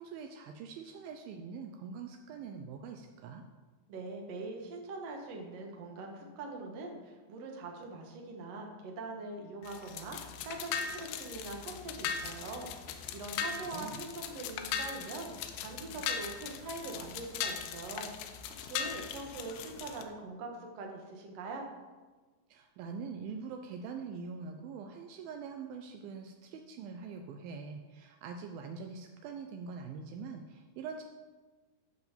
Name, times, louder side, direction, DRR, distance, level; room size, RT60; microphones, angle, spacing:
voice 1, 0.0-3.4 13.4-14.0 22.5-31.0, right 5 dB, 85° right, 5 dB, 2.1 m, -44 dB
voice 2, 3.9-15.3 15.6-21.7, right 3 dB, 60° right, 1 dB, 1.8 m, -43 dB
sound 1, 9.6-20.0, left 7 dB, 85° left, 2.9 m, -39 dB
11.5 x 5.0 x 7.1 m, 1.3 s
omnidirectional pair, 4.8 m